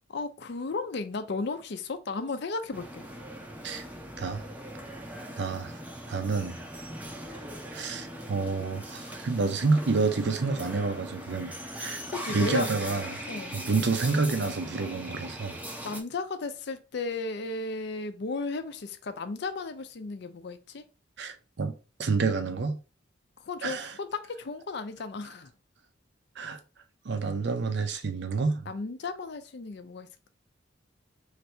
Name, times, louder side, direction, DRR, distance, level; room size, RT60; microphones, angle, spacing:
voice 1, 0.1-3.0 11.8-12.7 13.3-13.6 15.8-20.8 23.4-25.5 28.7-30.3, left 3 dB, 55° left, 0.5 m, -35 dB
sound 1, 2.7-16.0, equal, 10° right, 0.5 m, -40 dB
voice 2, 5.4-5.8 6.1-6.6 7.7-12.0 12.3-13.2 13.5-15.6 21.2-21.7 22.0-22.8 23.6-23.9 26.4-26.6 27.0-28.7, right 4 dB, 55° right, 0.6 m, -29 dB
3.2 x 2.7 x 4.3 m
head